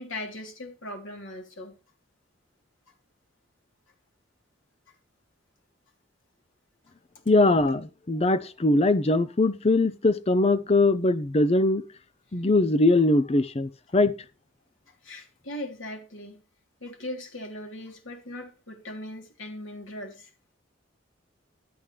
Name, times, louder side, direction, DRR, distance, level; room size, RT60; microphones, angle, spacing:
voice 1, 0.0-1.7 14.9-16.4 16.8-20.3, left 1 dB, 75° left, 3.3 m, -39 dB
voice 2, 7.3-11.8 12.3-14.1, left 2 dB, 30° left, 0.6 m, -21 dB
12.0 x 9.0 x 3.3 m
head